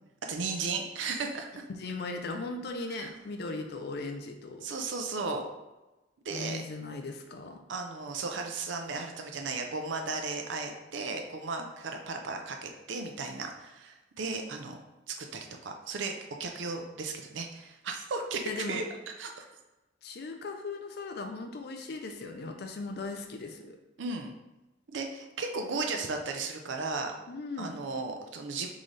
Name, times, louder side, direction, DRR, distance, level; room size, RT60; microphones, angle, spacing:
voice 1, 0.3-1.6 2.9-3.1 4.6-5.4 6.2-6.6 7.7-14.8 15.1-16.1 16.4-18.8 19.2-19.5 24.0-24.3 24.9-27.1 27.6-28.7, right 3 dB, 85° right, 3 dB, 0.5 m, -35 dB
voice 2, 1.7-4.6 6.3-7.6 11.6-11.7 18.4-18.8 20.0-23.8 27.3-27.8, left 3 dB, 60° left, 4 dB, 0.4 m, -38 dB
3.7 x 3.3 x 3.9 m, 1.0 s
head